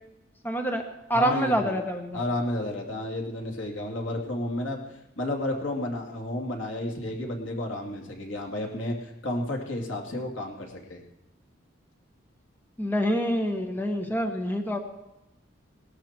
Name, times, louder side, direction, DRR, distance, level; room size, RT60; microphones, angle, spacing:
voice 1, 0.4-0.8 1.1-2.2 12.8-14.8, equal, 10° left, 4 dB, 1.4 m, -26 dB
voice 2, 1.1-1.8 2.1-4.8 5.2-11.0, left 1 dB, 90° left, 1 dB, 2.8 m, -31 dB
19.0 x 13.0 x 4.5 m, 0.93 s
head